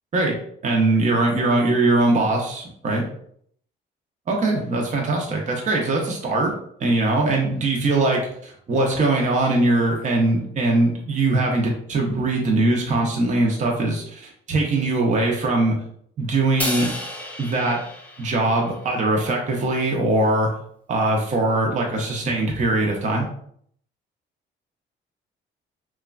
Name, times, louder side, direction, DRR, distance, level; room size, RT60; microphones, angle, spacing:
voice 1, 0.6-3.0 4.3-6.5 6.8-15.7 16.2-16.9 17.4-17.8 18.2-20.5 20.9-23.3, right 2 dB, 40° right, 0 dB, 0.6 m, -21 dB
Crash cymbal, 16.6-19.0, left 1 dB, 10° left, 0.5 m, -32 dB
3.0 x 2.2 x 2.3 m, 0.65 s
cardioid pair, 90°, 20 cm